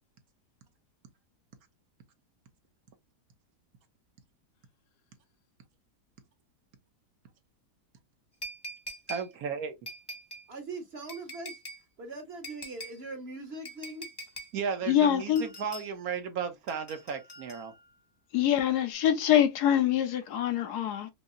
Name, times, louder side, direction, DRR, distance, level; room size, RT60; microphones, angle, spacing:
sound 1, 8.4-9.3 9.9-10.5 11.1-11.8 12.4-13.0 13.6-14.5 15.4-15.9 16.7-17.9 18.9-19.0, right 1 dB, 20° left, 0.7 m, -43 dB
voice 1, 9.1-9.7 14.5-17.7, right 6 dB, 70° right, 1.2 m, -34 dB
voice 2, 10.5-11.6 12.0-14.1, right 2 dB, 45° right, 1.0 m, -41 dB
voice 3, 14.9-15.4 18.3-21.1, left 10 dB, 75° left, 1.2 m, -25 dB
5.4 x 2.0 x 2.4 m
omnidirectional pair, 1.7 m